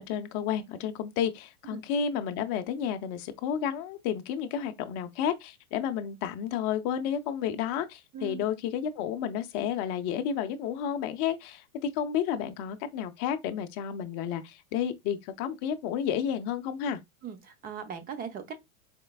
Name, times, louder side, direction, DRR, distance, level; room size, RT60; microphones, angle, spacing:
voice 1, 0.0-17.0, left 8 dB, 35° left, 0.6 m, -31 dB
voice 2, 17.2-18.6, right 7 dB, 20° right, 0.6 m, -39 dB
4.4 x 3.1 x 2.3 m
hypercardioid pair, 125°, 43 cm